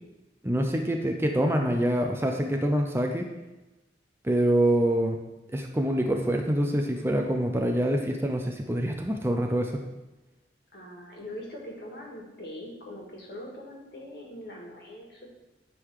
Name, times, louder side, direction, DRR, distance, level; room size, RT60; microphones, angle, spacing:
voice 1, 0.4-3.3 4.2-5.2 5.5-9.8, right 1 dB, 15° right, 3 dB, 0.5 m, -25 dB
voice 2, 10.7-15.3, left 1 dB, 60° left, -2 dB, 1.9 m, -42 dB
9.7 x 3.8 x 4.8 m, 1.0 s
head